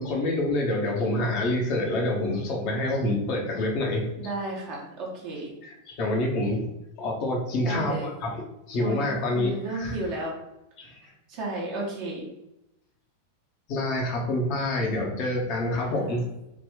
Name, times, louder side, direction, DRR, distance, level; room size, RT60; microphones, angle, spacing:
voice 1, 0.0-4.1 5.6-6.7 7.0-10.0 10.8-11.0 13.7-16.2, left 1 dB, 40° left, -1 dB, 0.9 m, -27 dB
voice 2, 4.2-5.5 7.6-8.1 8.8-10.3 11.3-12.2 15.7-16.2, right 2 dB, 45° right, -3 dB, 0.9 m, -33 dB
3.4 x 2.5 x 3.4 m, 0.89 s
figure-of-eight pair, 90°, 0 cm